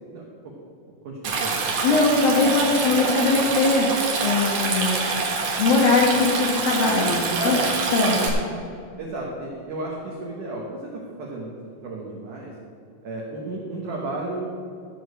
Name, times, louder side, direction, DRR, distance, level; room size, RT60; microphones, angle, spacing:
voice 1, 0.1-0.6 1.0-1.6 7.3-7.7 9.0-12.6 13.0-14.5, right 2 dB, 80° right, -2 dB, 1.8 m, -33 dB
Stream, 1.2-8.3, right 4 dB, 65° right, 2.0 m, -26 dB
voice 2, 1.8-3.9 4.2-5.0 5.6-7.6 7.9-8.4, left 3 dB, 65° left, -2 dB, 2.5 m, -21 dB
15.0 x 5.1 x 7.8 m, 2.4 s
omnidirectional pair, 5.7 m